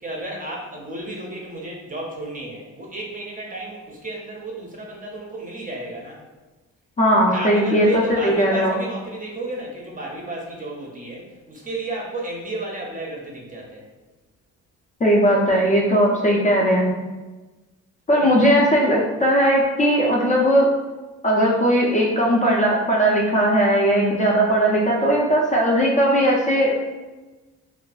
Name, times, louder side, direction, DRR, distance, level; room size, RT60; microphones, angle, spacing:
voice 1, 0.0-6.2 7.3-13.8 18.1-18.5, right 2 dB, 25° right, -1 dB, 0.6 m, -33 dB
voice 2, 7.0-8.7 15.0-16.9 18.1-20.7 21.2-26.7, equal, 25° left, -3 dB, 0.4 m, -18 dB
2.5 x 2.3 x 2.3 m, 1.2 s
cardioid pair, 90°, 30 cm